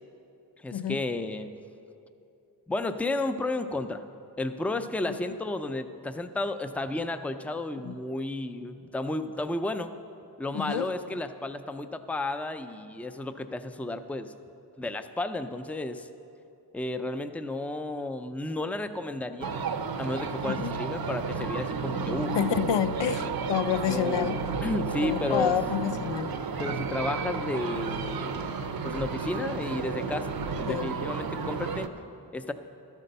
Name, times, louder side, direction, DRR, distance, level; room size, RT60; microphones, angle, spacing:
voice 1, 0.6-1.5 2.7-4.0 4.4-9.9 10.4-14.3 14.8-16.1 16.7-19.6 20.0-22.4 23.9-24.4 24.6-25.5 26.6-28.5 28.8-31.9 32.3-32.5, left 2 dB, 5° left, 9 dB, 0.4 m, -32 dB
voice 2, 10.5-10.9 20.4-20.8 22.3-24.4 25.0-26.3 30.6-30.9, left 9 dB, 85° left, 11 dB, 0.5 m, -29 dB
sound 1, 19.4-31.9, right 5 dB, 60° right, 0.7 m, -32 dB
12.5 x 8.2 x 6.6 m, 2.7 s
wide cardioid pair, 75°, 42 cm